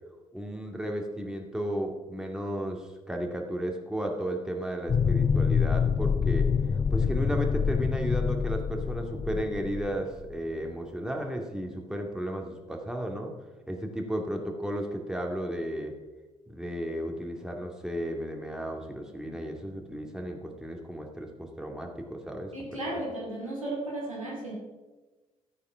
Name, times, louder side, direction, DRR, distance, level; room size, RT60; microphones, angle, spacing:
voice 1, 0.3-6.5 6.9-13.3 13.7-16.0 16.5-23.0, equal, 5° right, 2 dB, 2.3 m, -34 dB
sound 1, 4.9-10.3, left 6 dB, 25° left, 0.4 m, -26 dB
voice 2, 22.5-24.5, right 1 dB, 90° right, -5 dB, 2.6 m, -34 dB
13.5 x 8.2 x 5.7 m, 1.2 s
figure-of-eight pair, 45°, 17 cm